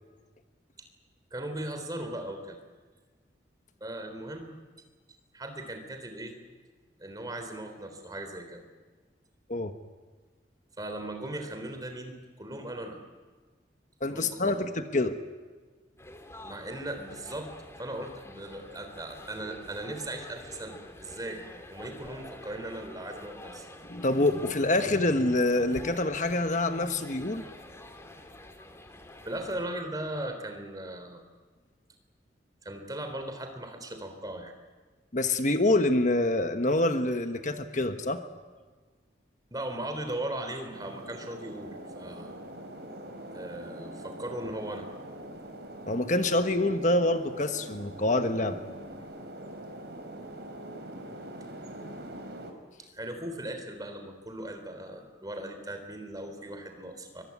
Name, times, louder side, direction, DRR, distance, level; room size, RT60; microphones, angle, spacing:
voice 1, 1.3-2.6 3.8-4.5 5.3-6.3 7.0-8.6 10.8-13.0 14.1-14.7 16.4-17.5 17.8-21.4 21.7-23.7 29.3-31.2 32.6-34.5 39.5-42.3 43.3-44.9 52.9-57.2, right 1 dB, 20° right, 6 dB, 3.6 m, -38 dB
voice 2, 14.0-15.2 23.9-27.4 35.1-38.2 45.9-48.6, left 2 dB, 45° left, 8 dB, 1.3 m, -26 dB
sound 1, 16.0-29.7, left 1 dB, 15° left, 2.4 m, -48 dB
sound 2, 40.7-52.5, right 1 dB, 65° right, 4.1 m, -43 dB
23.5 x 23.0 x 9.7 m, 1.4 s
head